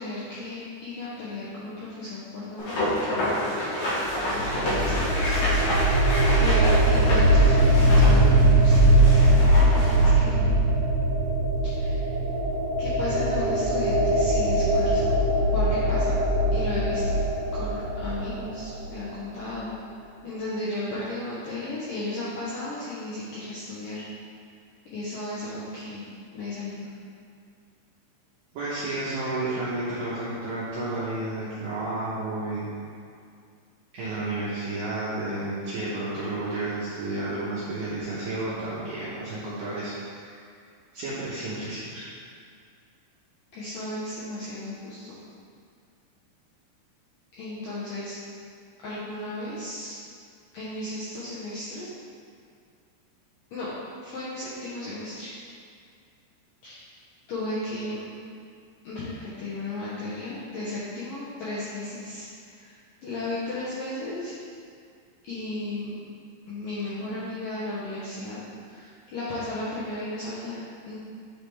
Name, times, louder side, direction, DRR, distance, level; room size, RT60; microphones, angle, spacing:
voice 1, 0.0-3.2 4.3-5.7 6.0-10.5 11.8-12.0 12.8-15.2 15.5-16.2 16.5-17.2 17.5-19.7 20.2-24.1 24.9-26.9 43.5-45.2 47.3-48.2 48.8-49.9 50.5-51.9 53.5-53.7 54.0-55.3 56.6-56.8 57.3-58.1 58.8-62.7 63.0-64.3 65.3-66.0 66.5-68.4 68.7-70.6 70.9-71.0, left 2 dB, 75° left, -9 dB, 2.0 m, -35 dB
sound 1, 2.6-10.1, equal, 55° left, 3.2 m, -29 dB
sound 2, 4.1-18.9, right 1 dB, 55° right, 1.9 m, -21 dB
voice 2, 28.5-32.7 33.9-40.4 40.9-42.1, right 2 dB, 75° right, -10 dB, 2.0 m, -31 dB
9.4 x 5.0 x 3.3 m, 2.2 s
omnidirectional pair, 5.4 m